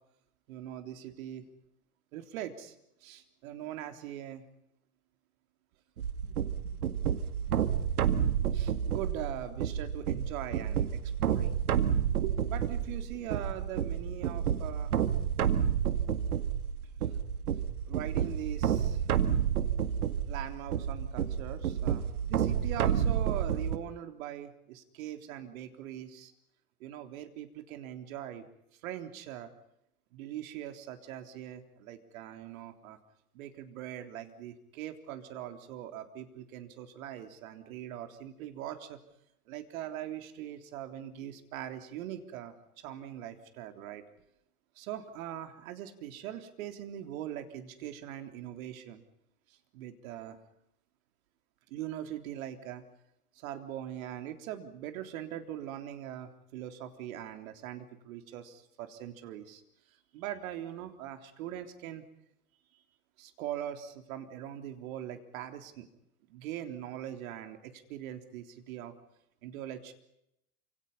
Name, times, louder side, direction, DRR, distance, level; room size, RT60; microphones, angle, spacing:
voice 1, 0.5-1.5 2.1-2.8 3.0-4.4 6.2-6.4 6.6-6.8 8.5-11.7 12.2-15.0 16.0-16.1 17.1-17.2 17.9-19.0 20.3-26.3 26.8-28.5 28.8-29.5 30.1-33.0 33.3-39.0 39.5-44.0 44.8-49.0 49.5-50.4 51.7-52.8 53.3-59.6 60.1-62.0 63.2-65.9 66.3-68.9 69.4-69.9, right 11 dB, 65° right, 7 dB, 3.6 m, -41 dB
sound 1, 6.0-23.8, right 8 dB, 80° right, 2.1 m, -30 dB
29.0 x 27.0 x 5.6 m, 0.80 s
hypercardioid pair, 95°, 44 cm